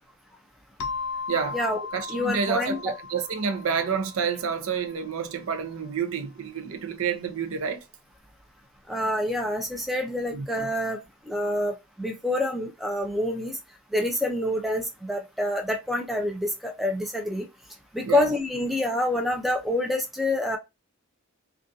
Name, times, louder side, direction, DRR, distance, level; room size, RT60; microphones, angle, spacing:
sound 1, 0.8-5.2, left 5 dB, 75° left, 0.4 m, -37 dB
voice 1, 1.3-1.6 1.9-7.8 10.3-10.5 18.1-18.3, right 6 dB, 75° right, 0.5 m, -29 dB
voice 2, 2.1-2.8 8.9-11.0 11.3-13.6 13.9-17.5 17.9-20.6, left 1 dB, ahead, 0.4 m, -27 dB
2.5 x 2.3 x 2.6 m
head